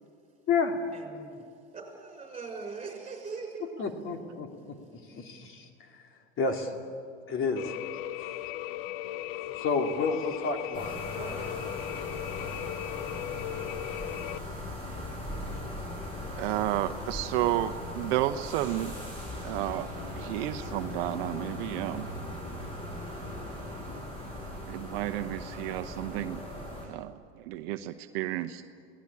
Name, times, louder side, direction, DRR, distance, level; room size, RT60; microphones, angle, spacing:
voice 1, 0.9-1.4 1.7-3.8 11.1-11.8, right 4 dB, 15° right, 4 dB, 6.3 m, -41 dB
voice 2, 3.8-4.7 5.1-5.7 6.4-6.7 7.3-7.8 9.6-11.0, left 4 dB, 40° left, 4 dB, 2.8 m, -30 dB
sound 1, 7.6-14.4, left 13 dB, 60° left, 0.9 m, -37 dB
sound 2, 10.7-26.9, left 1 dB, 15° left, 7.7 m, -39 dB
voice 3, 16.4-18.9 19.4-22.1 24.7-26.4 26.8-28.7, right 14 dB, 60° right, 9 dB, 1.0 m, -32 dB
27.5 x 18.5 x 8.7 m, 2.3 s
hypercardioid pair, 95°, 33 cm